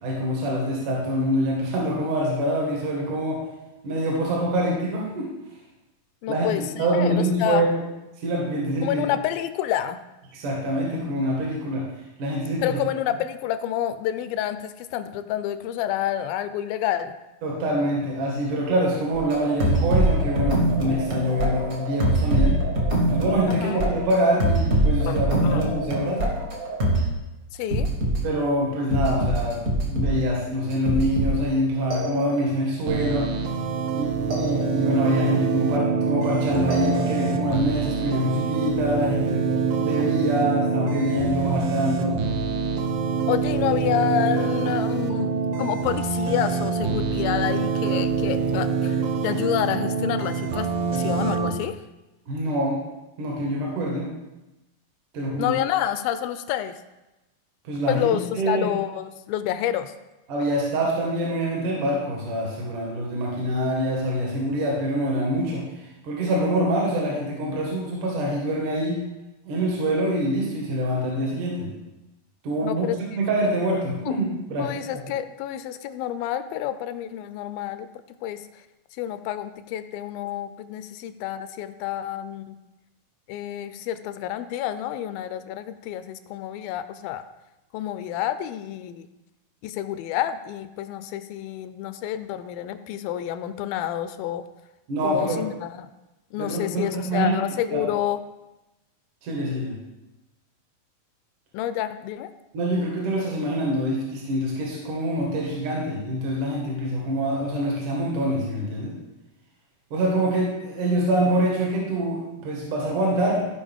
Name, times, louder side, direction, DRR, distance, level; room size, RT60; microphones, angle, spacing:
voice 1, 0.0-3.4 3.8-5.3 6.3-7.7 8.2-9.0 10.3-11.8 12.2-12.8 17.4-22.6 23.1-26.2 28.2-29.6 29.9-33.3 33.9-39.4 39.8-42.2 52.3-52.8 53.2-54.1 55.1-55.5 57.6-58.7 60.3-69.0 69.4-71.7 72.4-72.8 73.1-74.8 94.9-95.5 96.4-97.4 97.7-97.8 99.2-99.7 102.5-108.9 109.9-113.5, right 1 dB, 65° right, -3 dB, 3.1 m, -25 dB
voice 2, 6.2-7.6 8.8-10.0 12.6-17.1 23.5-23.8 25.1-25.6 27.5-27.9 43.3-51.8 55.4-56.8 57.9-59.9 72.6-73.2 74.1-74.2 74.6-77.9 78.2-78.4 79.0-82.6 83.3-87.2 87.7-89.1 89.6-94.4 95.0-95.9 96.3-98.2 101.5-102.3, left 11 dB, 85° left, 11 dB, 2.3 m, -28 dB
sound 1, 19.1-27.1 27.7-28.2 28.9-30.3 30.7-31.5 31.9-32.7 34.3-35.1 36.7-37.5, right 1 dB, 40° right, 1.4 m, -24 dB
sound 2, 32.9-51.5, right 5 dB, 80° right, 2.5 m, -25 dB
15.0 x 5.5 x 3.6 m, 1.0 s
omnidirectional pair, 4.2 m